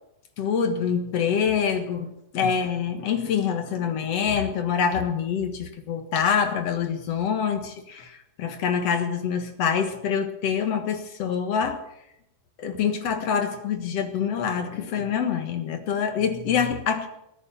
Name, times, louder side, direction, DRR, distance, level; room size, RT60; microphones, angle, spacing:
voice 1, 0.4-2.1 2.3-11.8 12.6-17.1, left 7 dB, 55° left, 6 dB, 2.2 m, -25 dB
18.5 x 9.7 x 7.2 m, 0.81 s
omnidirectional pair, 4.0 m